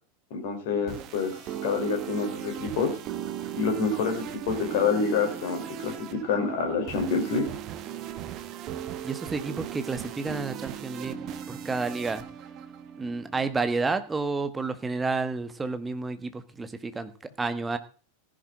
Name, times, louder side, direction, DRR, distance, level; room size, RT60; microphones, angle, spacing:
voice 1, 0.3-3.0 3.5-7.5, left 5 dB, 50° left, 6 dB, 4.0 m, -27 dB
sound 1, 0.7-13.5, right 9 dB, 35° right, 1.4 m, -38 dB
voice 2, 9.0-11.2 11.5-12.2 13.0-17.1 17.4-17.8, right 3 dB, 10° right, 10 dB, 1.4 m, -30 dB
16.0 x 11.0 x 3.8 m, 0.38 s
figure-of-eight pair, 90°, 0 cm